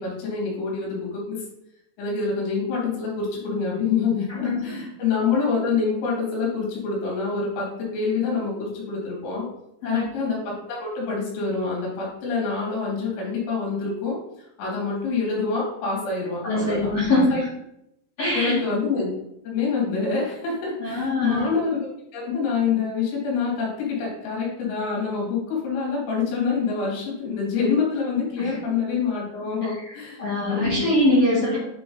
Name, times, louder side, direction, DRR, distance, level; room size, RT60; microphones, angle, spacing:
voice 1, 0.0-1.4 2.0-9.5 9.8-14.2 14.6-17.4 18.3-19.1 19.4-30.2 30.5-30.9, left 5 dB, 80° left, -3 dB, 5.0 m, -26 dB
voice 2, 4.3-4.8 9.8-10.1 16.4-17.5 18.2-18.6 20.8-21.5 28.4-28.6 29.6-29.9 30.2-31.6, left 1 dB, 55° left, -9 dB, 1.8 m, -23 dB
9.6 x 3.8 x 3.9 m, 0.81 s
omnidirectional pair, 5.9 m